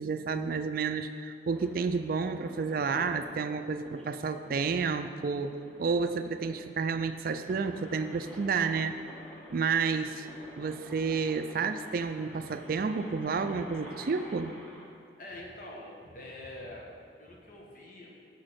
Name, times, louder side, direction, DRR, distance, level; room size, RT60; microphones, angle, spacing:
voice 1, 0.0-8.9 9.5-10.3 10.6-14.5, right 5 dB, 55° right, 9 dB, 0.4 m, -30 dB
sound 1, 1.5-14.9, equal, 5° left, 1.6 m, -49 dB
voice 2, 15.2-16.9 17.2-18.1, left 1 dB, 50° left, -2 dB, 1.4 m, -45 dB
7.5 x 6.3 x 6.4 m, 2.4 s
head